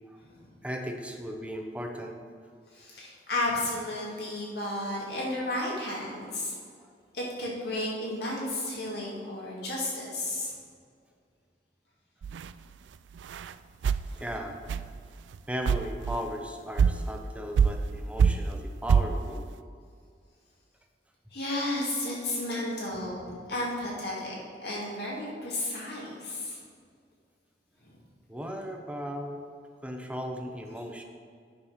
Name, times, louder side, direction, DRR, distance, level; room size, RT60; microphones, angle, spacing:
voice 1, 0.6-2.2 6.8-6.9 14.1-14.6 15.5-19.5 28.3-29.4 29.8-31.0, equal, 5° right, 3 dB, 0.7 m, -36 dB
voice 2, 2.7-6.5 7.1-10.5 14.1-14.2 21.3-26.6 27.8-27.9, left 1 dB, 60° left, -4 dB, 2.4 m, -33 dB
sound 1, 12.2-12.5 13.2-13.5 13.8-14.1 14.7-14.9 15.3-15.4 15.7-16.2 16.8-17.0 17.6-17.9 18.2-18.6 18.9-19.1, right 6 dB, 90° right, 0.3 m, -24 dB
9.8 x 5.4 x 5.7 m, 2.1 s
head